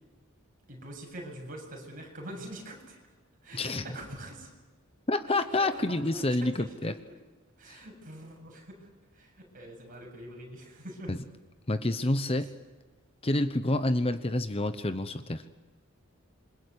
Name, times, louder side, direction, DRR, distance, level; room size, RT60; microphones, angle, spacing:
voice 1, 0.7-3.0 3.4-4.5 5.3-6.9 7.6-8.9 9.1-11.1, right 1 dB, 40° right, 0 dB, 7.8 m, -44 dB
voice 2, 3.5-3.8 5.1-6.9 7.7-7.8 11.1-11.2 11.7-12.5 13.2-15.4, left 2 dB, 30° left, 11 dB, 1.0 m, -28 dB
27.5 x 24.0 x 8.3 m, 1.3 s
head